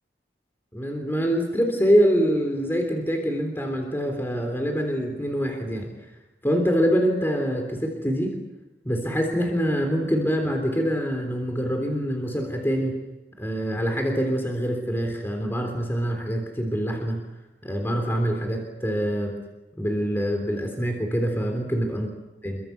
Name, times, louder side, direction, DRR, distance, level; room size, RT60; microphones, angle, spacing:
voice 1, 0.7-6.0 6.4-8.4 8.9-13.0 13.4-17.2 17.6-19.3 19.8-22.1 22.4-22.6, equal, 15° left, 3 dB, 3.5 m, -25 dB
28.0 x 24.5 x 6.9 m, 1.1 s
head